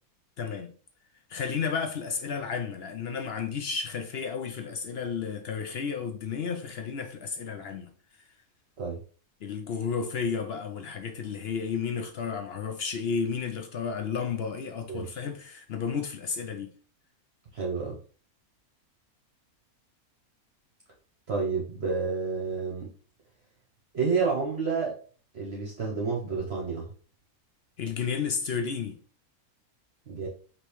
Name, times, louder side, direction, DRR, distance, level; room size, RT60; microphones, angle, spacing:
voice 1, 0.4-0.7 1.3-7.9 9.4-16.7 27.8-29.0, left 6 dB, 60° left, 0.7 m, -32 dB
voice 2, 14.9-15.2 17.5-18.0 21.3-22.9 23.9-24.9 25.3-26.9 30.1-30.3, right 5 dB, 50° right, 1.0 m, -29 dB
5.1 x 3.1 x 3.0 m
omnidirectional pair, 1.5 m